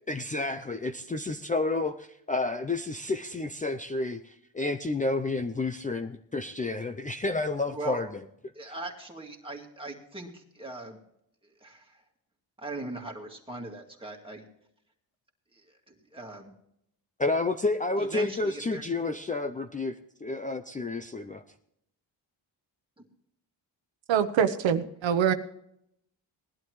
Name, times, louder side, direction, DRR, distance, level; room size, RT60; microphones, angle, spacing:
voice 1, 0.1-8.1 17.2-21.4, left 3 dB, 15° left, 6 dB, 0.5 m, -30 dB
voice 2, 8.5-11.0 11.4-12.0 12.6-14.5 15.5-15.6 15.9-16.5 18.0-18.8, right 2 dB, 10° right, 0 dB, 2.3 m, -40 dB
voice 3, 24.1-25.3, right 8 dB, 80° right, 10 dB, 1.0 m, -24 dB
19.0 x 11.5 x 3.1 m, 0.74 s
wide cardioid pair, 135°, 45 cm